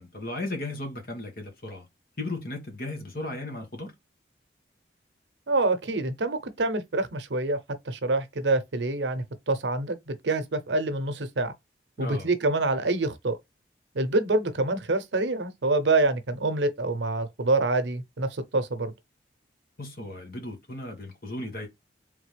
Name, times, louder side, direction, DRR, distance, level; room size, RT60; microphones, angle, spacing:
voice 1, 0.0-1.9 2.2-3.9 12.0-12.3 19.8-21.7, left 2 dB, 55° left, 1.5 m, -35 dB
voice 2, 5.5-7.6 7.9-11.5 12.0-13.4 13.9-18.9, right 2 dB, 85° right, 0.8 m, -26 dB
3.7 x 3.5 x 3.3 m
head